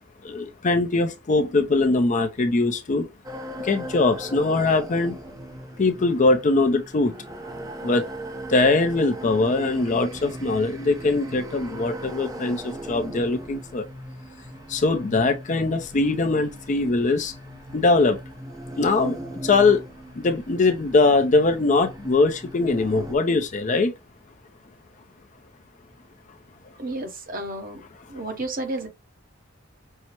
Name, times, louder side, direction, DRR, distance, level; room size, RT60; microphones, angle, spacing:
voice 1, 0.2-3.1 3.6-5.2 5.8-7.1 7.8-8.1 8.5-13.8 14.7-17.3 17.7-18.2 18.8-19.8 20.2-23.9, left 3 dB, 40° left, 0.4 m, -21 dB
sound 1, 3.2-23.2, right 1 dB, 20° right, 0.6 m, -38 dB
voice 2, 26.8-27.8 28.1-28.9, right 2 dB, 45° right, 0.9 m, -31 dB
5.5 x 2.0 x 3.0 m
head